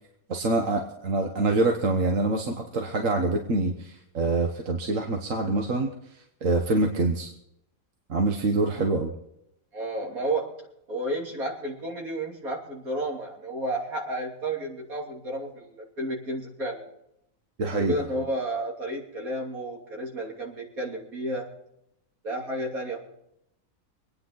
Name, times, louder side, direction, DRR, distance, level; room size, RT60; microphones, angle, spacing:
voice 1, 0.3-5.9 6.4-7.3 8.1-9.1 17.6-18.0, right 3 dB, 65° right, 3 dB, 1.7 m, -25 dB
voice 2, 9.7-10.6 10.9-16.9 17.6-21.5 22.2-23.0, right 1 dB, 85° right, -1 dB, 3.4 m, -32 dB
25.0 x 9.6 x 4.0 m, 0.80 s
omnidirectional pair, 1.5 m